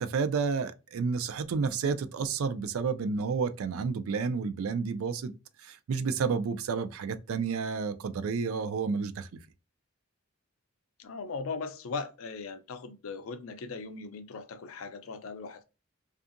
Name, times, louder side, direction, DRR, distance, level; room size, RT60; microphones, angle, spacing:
voice 1, 0.0-5.3 5.6-9.3, right 5 dB, 75° right, 0.4 m, -30 dB
voice 2, 11.0-15.6, left 4 dB, 75° left, 0.4 m, -39 dB
2.6 x 2.3 x 2.5 m
head